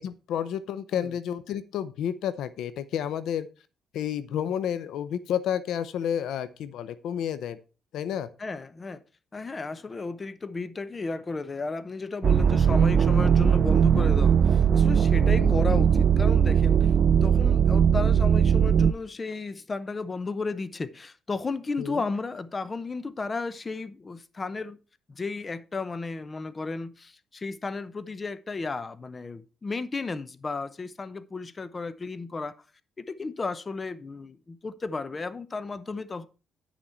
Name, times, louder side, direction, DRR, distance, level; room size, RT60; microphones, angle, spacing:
voice 1, 0.0-3.5 3.9-7.6 7.9-8.3 15.4-15.5 21.8-22.0, left 9 dB, 80° left, 0.7 m, -30 dB
voice 2, 8.4-9.0 9.3-16.9 17.2-24.8 25.1-32.5 33.0-36.3, left 3 dB, 30° left, 0.7 m, -33 dB
sound 1, 12.2-18.9, right 7 dB, 50° right, 0.4 m, -20 dB
9.5 x 6.3 x 4.3 m
cardioid pair, 90°, 0 cm